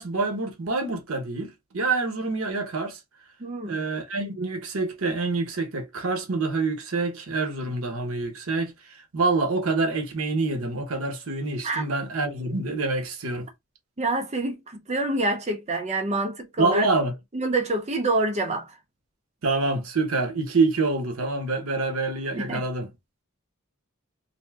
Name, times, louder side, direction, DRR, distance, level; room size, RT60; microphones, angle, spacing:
voice 1, 0.0-3.0 3.6-8.7 9.1-13.5 16.6-17.1 19.4-22.9, right 3 dB, 80° right, 0.9 m, -26 dB
voice 2, 3.4-3.8 11.6-11.9 14.0-16.9 17.3-18.7 22.3-22.7, right 2 dB, 30° right, 0.6 m, -27 dB
2.6 x 2.1 x 3.5 m
head